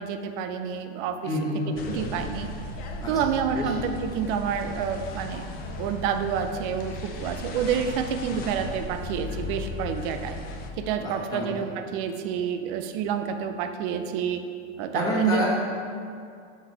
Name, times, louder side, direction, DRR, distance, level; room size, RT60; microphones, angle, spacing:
voice 1, 0.0-1.2 1.9-2.5 3.1-5.4 5.8-10.4 10.8-14.4 14.8-15.4, right 7 dB, 50° right, 7 dB, 0.5 m, -28 dB
voice 2, 1.2-2.1 3.0-3.1 3.5-3.7 11.0-11.7 14.9-15.5, left 1 dB, 10° left, -6 dB, 1.3 m, -29 dB
sound 1, 1.8-10.7, left 2 dB, 30° left, 0.4 m, -36 dB
5.9 x 4.1 x 4.8 m, 2.3 s
supercardioid pair, 145°, 34 cm